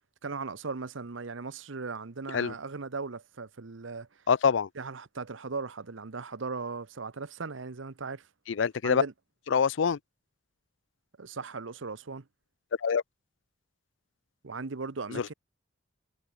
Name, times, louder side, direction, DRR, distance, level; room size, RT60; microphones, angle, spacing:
voice 1, 0.2-4.2 4.7-8.3 8.8-9.1 11.2-12.3 14.4-15.3, right 4 dB, 70° right, 0.9 m, -38 dB
voice 2, 4.3-4.7 8.5-9.0 9.5-10.0 12.8-13.0 15.1-15.3, left 6 dB, 65° left, 0.4 m, -25 dB
head